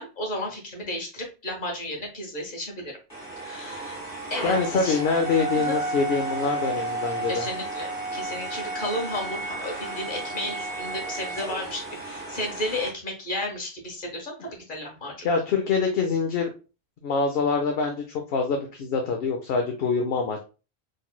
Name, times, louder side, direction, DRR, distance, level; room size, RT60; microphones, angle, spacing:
voice 1, 0.0-2.9 3.4-4.0 4.3-5.0 5.5-5.8 7.3-15.3, left 1 dB, 50° left, 1 dB, 1.3 m, -33 dB
sound 1, 3.1-12.9, right 2 dB, 20° left, 1.5 m, -32 dB
voice 2, 4.4-7.5 15.2-16.5 17.0-18.0 18.3-20.4, left 4 dB, 70° left, 4 dB, 0.8 m, -25 dB
3.9 x 3.2 x 2.2 m, 0.32 s
omnidirectional pair, 1.1 m